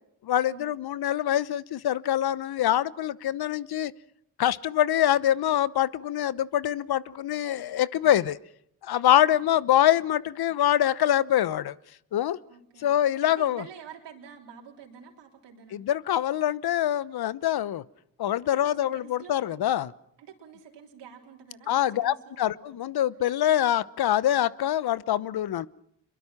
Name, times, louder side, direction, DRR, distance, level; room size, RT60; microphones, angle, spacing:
voice 1, 0.2-3.9 4.4-8.4 8.8-11.8 12.1-12.4 12.8-13.6 15.7-17.8 18.2-19.9 21.7-25.7, left 11 dB, 55° left, 1.0 m, -24 dB
voice 2, 12.5-12.9 13.4-15.8 18.5-19.5 20.2-22.9, right 7 dB, 65° right, 3.8 m, -48 dB
26.5 x 23.0 x 5.9 m
hypercardioid pair, 45°, 45 cm